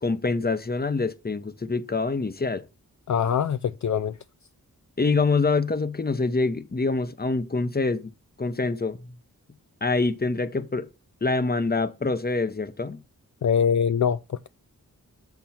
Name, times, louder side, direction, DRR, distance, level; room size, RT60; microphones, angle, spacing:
voice 1, 0.0-2.6 5.0-8.1 8.4-9.0 9.8-10.9 11.2-13.0, left 3 dB, 25° left, 0.9 m, -25 dB
voice 2, 3.1-4.2 13.4-14.5, left 7 dB, 55° left, 0.5 m, -23 dB
7.0 x 5.9 x 4.3 m
cardioid pair, 50°, 35 cm